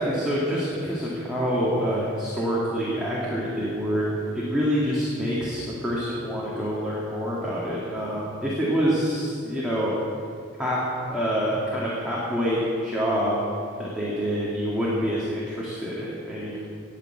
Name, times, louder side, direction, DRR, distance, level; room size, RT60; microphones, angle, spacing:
voice 1, 0.0-4.1 4.3-10.0 10.6-10.8 11.1-13.4 13.8-16.6, equal, 5° right, -8 dB, 2.3 m, -26 dB
19.0 x 6.8 x 8.1 m, 2.6 s
head